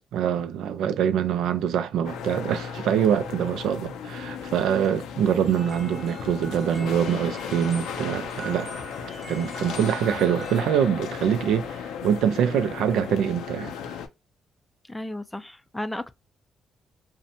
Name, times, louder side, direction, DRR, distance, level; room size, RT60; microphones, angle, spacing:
voice 1, 0.1-8.7 9.3-13.7, right 9 dB, 80° right, 0.3 m, -24 dB
sound 1, 2.0-14.1, left 7 dB, 90° left, 0.5 m, -36 dB
sound 2, 5.5-11.9, right 2 dB, 10° right, 0.8 m, -42 dB
voice 2, 14.8-16.1, left 1 dB, 10° left, 0.3 m, -34 dB
2.6 x 2.1 x 2.6 m
cardioid pair, 90°, 0 cm